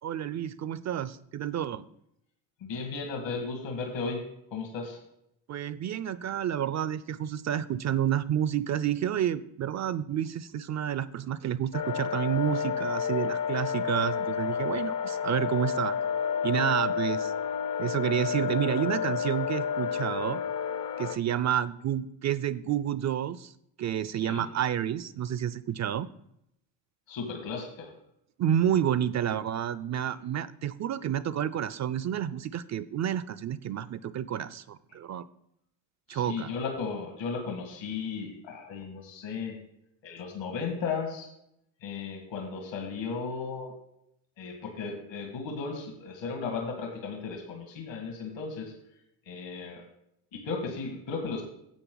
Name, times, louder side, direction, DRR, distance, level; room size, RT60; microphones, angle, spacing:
voice 1, 0.0-1.8 5.5-16.0 16.4-17.3 17.8-20.4 21.0-23.5 23.8-26.1 28.4-35.2 36.1-36.5, right 10 dB, 40° right, 16 dB, 0.4 m, -30 dB
voice 2, 2.6-5.0 24.1-24.4 27.1-27.9 36.1-39.6 40.0-41.3 41.8-43.7 44.4-48.8 49.2-49.8 50.3-51.4, left 4 dB, 65° left, 2 dB, 2.0 m, -35 dB
sound 1, 11.7-21.2, left 7 dB, 45° left, 0.7 m, -30 dB
10.5 x 7.7 x 3.9 m, 0.77 s
supercardioid pair, 85°, 48 cm